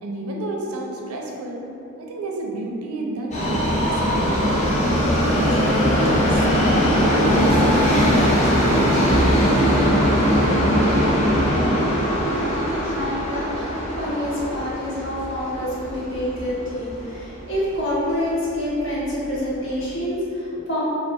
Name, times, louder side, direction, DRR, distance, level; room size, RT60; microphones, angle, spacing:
voice 1, 0.0-1.6 2.0-4.9 5.2-6.8 7.1-8.8, right 2 dB, 85° right, 0 dB, 0.5 m, -31 dB
Subway metro underground, 3.3-17.4 17.7-17.8 18.7-18.8 19.1-19.2 19.8-19.9, equal, 30° left, 0.6 m, -20 dB
voice 2, 12.1-20.8, left 1 dB, 60° left, -8 dB, 1.1 m, -27 dB
3.2 x 2.4 x 4.3 m, 2.8 s
head